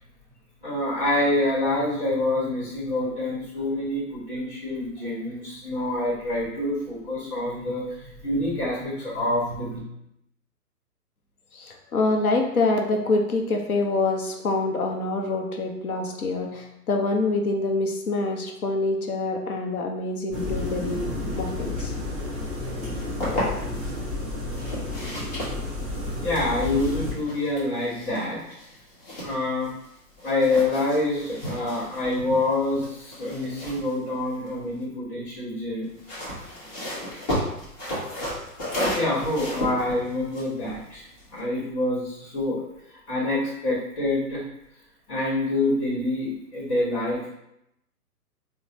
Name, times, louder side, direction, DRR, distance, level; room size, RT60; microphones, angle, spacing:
voice 1, 0.6-9.8 26.2-28.4 29.2-29.7 30.2-35.9 38.9-41.0 41.3-42.6 42.9-44.4 45.1-47.3, left 2 dB, 45° left, -6 dB, 1.4 m, -26 dB
voice 2, 11.5-21.1 21.4-21.9, left 3 dB, 65° left, 2 dB, 0.8 m, -26 dB
sound 1, 20.3-27.1, left 2 dB, ahead, 0.8 m, -31 dB
sound 2, 22.9-23.9 24.5-29.9 30.2-34.8 35.8-41.4, left 1 dB, 25° left, 1.1 m, -34 dB
3.8 x 2.1 x 2.9 m, 0.81 s
figure-of-eight pair, 130°, 48 cm